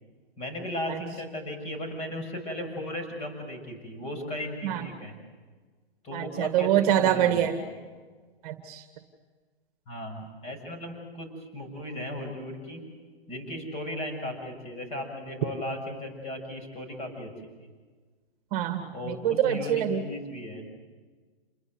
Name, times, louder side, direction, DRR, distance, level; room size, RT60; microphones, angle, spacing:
voice 1, 0.4-5.2 6.0-7.7 9.9-12.8 13.3-17.3 18.9-20.6, left 1 dB, 20° left, 4 dB, 6.9 m, -36 dB
voice 2, 6.1-7.6 8.4-8.8 18.5-20.0, right 10 dB, 35° right, 8 dB, 2.0 m, -25 dB
28.5 x 21.5 x 8.0 m, 1.4 s
hypercardioid pair, 150°, 31 cm